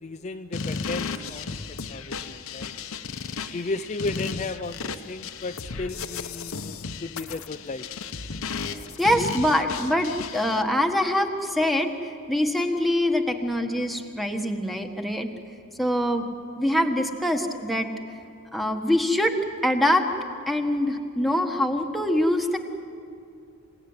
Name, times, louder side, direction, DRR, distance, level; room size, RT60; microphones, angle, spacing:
voice 1, 0.0-2.7 3.5-7.9, left 3 dB, 30° left, 7 dB, 0.5 m, -34 dB
sound 1, 0.5-10.6, left 5 dB, 70° left, 1.0 m, -34 dB
voice 2, 8.6-15.3 15.8-16.3 16.6-17.9 18.5-19.3 19.6-20.1 20.5-22.6, left 1 dB, ahead, 3 dB, 1.5 m, -24 dB
27.5 x 17.5 x 9.7 m, 2.5 s
head